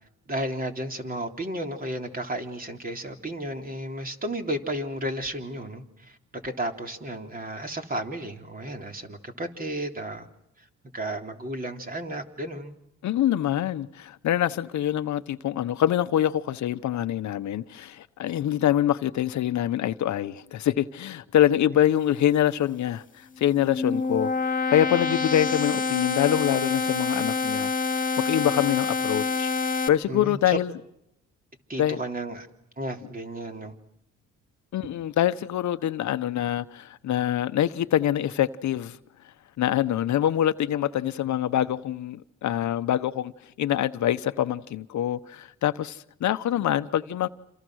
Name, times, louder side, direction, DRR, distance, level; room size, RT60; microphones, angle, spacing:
voice 1, 0.3-10.3 10.9-12.8 21.7-21.8 30.1-30.6 31.7-32.5 32.8-33.7, right 1 dB, 30° right, 3.6 m, -33 dB
voice 2, 13.0-30.7 31.8-32.0 34.7-39.0 39.6-43.3 43.6-47.3, left 11 dB, 70° left, 1.0 m, -25 dB
Monotron Long Atack, 23.4-29.9, left 4 dB, 25° left, 2.2 m, -27 dB
28.0 x 28.0 x 6.4 m
cardioid pair, 90°, 30 cm